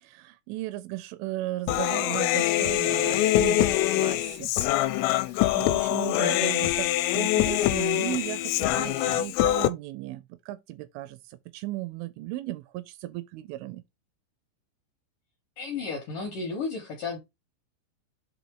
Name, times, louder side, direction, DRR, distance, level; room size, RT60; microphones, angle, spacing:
voice 1, 0.0-4.5 5.0-13.8, right 16 dB, 85° right, 2.9 m, -36 dB
Human voice, 1.7-9.7, left 14 dB, 90° left, 3.2 m, -24 dB
voice 2, 15.6-17.2, left 4 dB, 75° left, 2.0 m, -33 dB
7.7 x 2.8 x 4.5 m
omnidirectional pair, 5.7 m